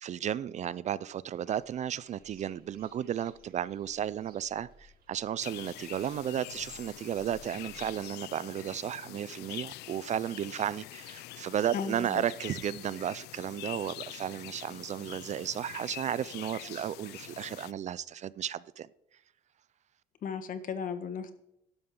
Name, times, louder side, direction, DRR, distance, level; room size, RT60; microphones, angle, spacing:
voice 1, 0.0-4.7 5.1-18.9, right 10 dB, 45° right, 0.4 m, -34 dB
sound 1, 1.3-7.9, right 1 dB, 60° right, 2.8 m, -60 dB
sound 2, 5.4-17.7, left 17 dB, 80° left, 0.5 m, -45 dB
voice 2, 11.7-12.2 20.2-21.3, left 6 dB, 55° left, 1.5 m, -35 dB
12.5 x 11.0 x 3.8 m
cardioid pair, 110°, 17 cm